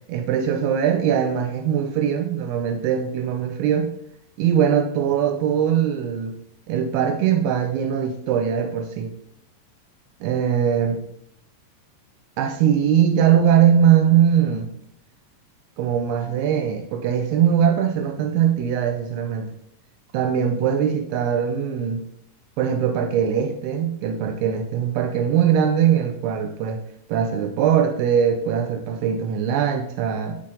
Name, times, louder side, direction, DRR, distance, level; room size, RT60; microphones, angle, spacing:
voice 1, 0.1-3.9 4.4-6.4 6.7-9.1 10.2-11.0 12.4-14.7 15.8-19.5 20.1-22.0 22.6-26.8 27.1-30.4, right 8 dB, 80° right, 6 dB, 2.4 m, -21 dB
6.6 x 3.8 x 3.7 m, 0.73 s
omnidirectional pair, 4.8 m